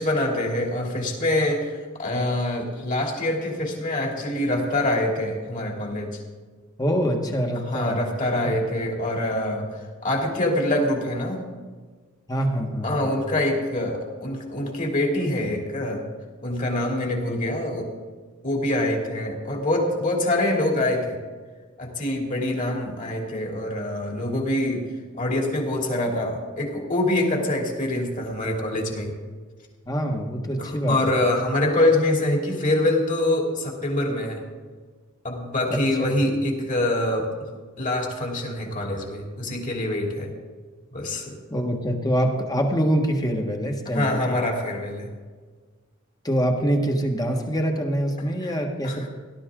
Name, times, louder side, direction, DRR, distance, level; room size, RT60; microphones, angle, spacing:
voice 1, 0.0-1.7 2.0-6.2 7.7-9.7 10.0-11.4 12.8-16.0 16.4-17.9 18.4-21.2 21.8-24.9 25.2-29.1 30.6-34.4 35.2-37.3 37.8-40.3 40.9-41.3 43.8-45.1 48.4-48.5 48.8-49.1, left 1 dB, 40° left, 0 dB, 3.1 m, -25 dB
voice 2, 6.8-8.0 8.4-8.6 12.3-13.1 29.9-31.1 41.5-44.3 46.2-49.1, equal, 20° left, 2 dB, 1.6 m, -25 dB
17.5 x 12.5 x 3.8 m, 1.5 s
head